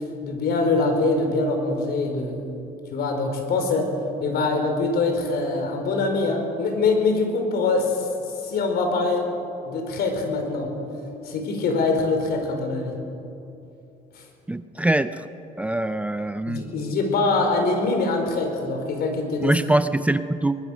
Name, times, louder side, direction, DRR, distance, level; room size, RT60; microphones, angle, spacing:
voice 1, 0.2-2.4 2.9-3.9 4.2-8.1 8.4-9.3 9.6-10.7 11.2-12.9 16.5-19.6, left 3 dB, 70° left, 4 dB, 4.6 m, -23 dB
voice 2, 14.5-15.1 15.6-16.7 19.4-20.6, right 1 dB, 10° right, 11 dB, 0.6 m, -23 dB
23.5 x 20.0 x 6.4 m, 2.8 s
cardioid pair, 110°, 17 cm